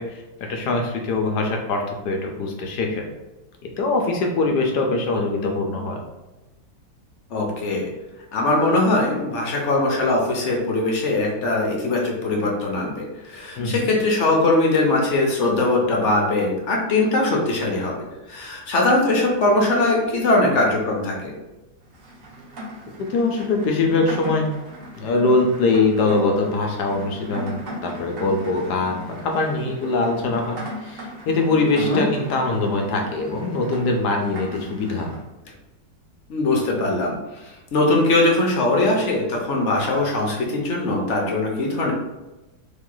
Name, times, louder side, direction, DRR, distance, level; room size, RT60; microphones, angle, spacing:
voice 1, 0.0-3.0 3.6-6.0 13.6-13.9 23.1-24.5 25.0-35.1, left 3 dB, 70° left, 2 dB, 1.1 m, -22 dB
voice 2, 7.3-7.9 8.3-17.9 18.3-21.3 31.8-32.0 36.3-37.2 37.7-41.9, left 2 dB, 50° left, -1 dB, 0.9 m, -21 dB
Rain, 21.9-35.2, equal, 55° right, 1.1 m, -39 dB
3.6 x 3.1 x 3.8 m, 1.0 s
omnidirectional pair, 1.9 m